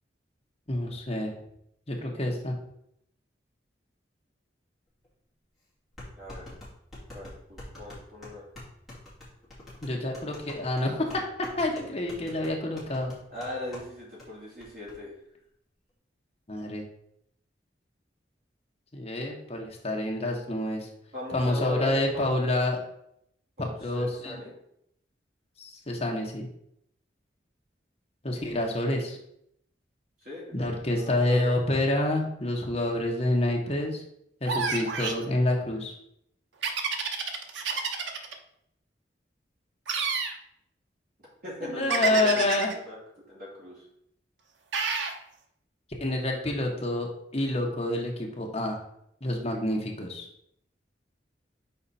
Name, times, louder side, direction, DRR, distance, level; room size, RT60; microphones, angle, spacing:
voice 1, 0.7-1.3 1.9-2.5 9.8-11.1 11.4-13.1 16.5-16.8 18.9-20.9 21.3-22.8 23.6-24.4 25.6-26.5 28.2-29.2 30.5-34.0 34.4-35.9 41.6-42.7 46.0-47.1 47.3-48.8 49.2-50.2, left 1 dB, 35° left, 0 dB, 1.1 m, -28 dB
sound 1, 5.0-5.1 6.0-13.9 14.2-14.3 14.6-15.0, left 1 dB, ahead, 2.3 m, -45 dB
voice 2, 6.2-6.5 7.1-8.4 13.3-15.1 21.1-22.3 23.6-24.5 30.2-31.6 41.4-43.0 43.3-43.8, left 1 dB, 50° right, -5 dB, 2.6 m, -39 dB
sound 2, 34.5-35.2 36.6-38.3 39.9-40.4 41.9-42.7 44.7-45.2, right 5 dB, 80° right, 0.7 m, -29 dB
5.7 x 4.4 x 4.2 m, 0.75 s
head